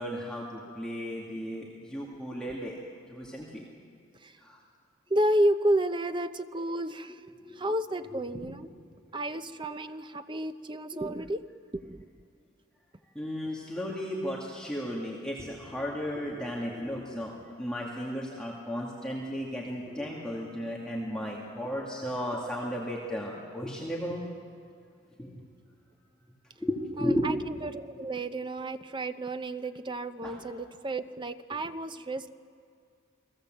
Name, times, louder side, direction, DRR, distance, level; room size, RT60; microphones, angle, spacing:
voice 1, 0.0-2.8 3.1-3.7 4.4-4.6 7.4-7.7 8.1-8.4 10.9-11.0 13.1-24.2 25.2-25.4 26.6-27.4 30.2-30.4, equal, 5° left, -4 dB, 2.4 m, -34 dB
voice 2, 5.1-7.2 7.5-8.7 9.1-11.4 11.7-12.1 27.0-27.4 27.6-32.3, right 1 dB, 20° right, 10 dB, 0.7 m, -31 dB
29.5 x 20.5 x 7.8 m, 2.3 s
head